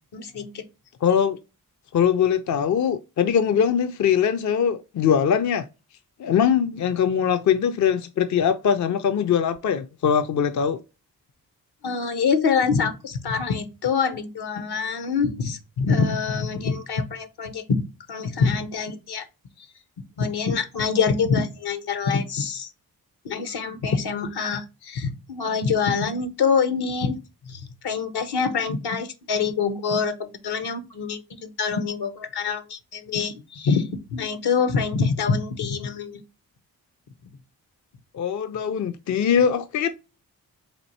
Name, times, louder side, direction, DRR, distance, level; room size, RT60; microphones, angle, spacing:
voice 1, 0.1-0.6 11.8-17.8 18.1-19.3 20.2-22.7 23.2-27.1 27.5-36.2, left 5 dB, 70° left, 0.8 m, -25 dB
voice 2, 1.0-1.4 1.9-5.6 6.2-10.8 38.1-39.9, left 8 dB, 45° left, 0.4 m, -22 dB
4.3 x 2.6 x 2.7 m
supercardioid pair, 40°, 41 cm